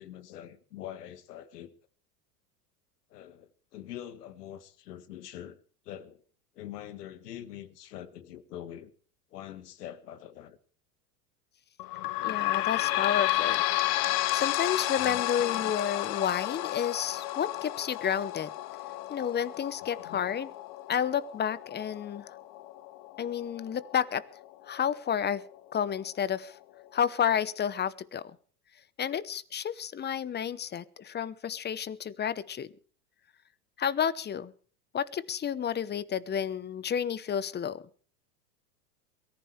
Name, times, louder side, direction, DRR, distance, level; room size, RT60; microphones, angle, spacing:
voice 1, 0.0-1.7 3.1-5.6 5.9-6.2 6.6-8.9 9.3-10.6 15.1-15.2 20.0-20.2, left 11 dB, 75° left, 1.8 m, -44 dB
sound 1, 11.8-25.0 25.5-25.6 25.9-26.0 26.8-26.9, left 16 dB, 50° left, 1.2 m, -32 dB
voice 2, 12.2-13.6 14.3-18.5 19.1-20.5 20.9-22.3 23.2-24.2 24.7-25.4 25.7-26.6 26.9-28.4 29.0-32.7 33.8-34.5 34.9-37.8, left 8 dB, 20° left, 0.9 m, -31 dB
22.5 x 14.5 x 3.3 m
hypercardioid pair, 95°, 48 cm